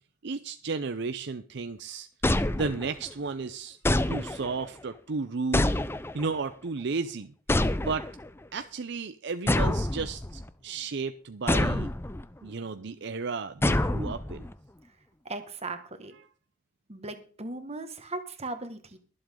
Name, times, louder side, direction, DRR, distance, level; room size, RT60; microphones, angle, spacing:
voice 1, 0.2-2.1 2.5-3.8 4.1-5.8 6.1-7.3 7.8-8.1 8.5-11.9 12.4-14.5, right 4 dB, 65° right, 10 dB, 0.7 m, -33 dB
sound 1, 2.2-3.1 3.8-4.7 5.5-6.4 7.5-8.3 9.5-10.5 11.5-12.2 13.6-14.5, left 1 dB, 15° left, 0.6 m, -27 dB
voice 2, 15.2-16.1 16.9-19.0, right 2 dB, 35° right, 8 dB, 1.8 m, -38 dB
23.0 x 7.8 x 3.8 m, 0.39 s
head